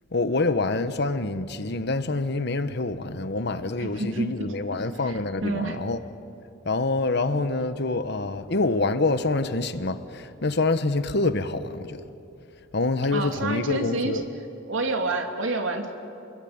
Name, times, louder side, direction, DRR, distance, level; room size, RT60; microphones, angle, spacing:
voice 1, 0.1-6.0 6.6-12.0 12.7-14.2, left 3 dB, 60° left, 1.2 m, -26 dB
voice 2, 3.8-4.5 5.0-5.8 13.1-14.1 14.7-16.0, right 2 dB, 85° right, 2.8 m, -28 dB
28.0 x 21.5 x 8.8 m
head